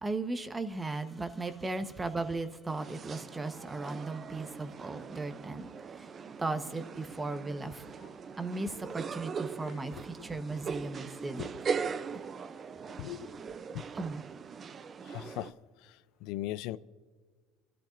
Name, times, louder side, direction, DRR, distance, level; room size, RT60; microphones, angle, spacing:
voice 1, 0.0-6.1 6.4-7.8 8.4-11.5 13.9-14.2, right 3 dB, 15° right, 1.0 m, -36 dB
sound 1, 2.7-15.5, right 6 dB, 30° right, 0.5 m, -40 dB
voice 2, 13.0-13.4 13.7-13.9 15.0-16.8, left 15 dB, 70° left, 0.4 m, -40 dB
29.0 x 13.0 x 2.6 m
cardioid pair, 135°, 0 cm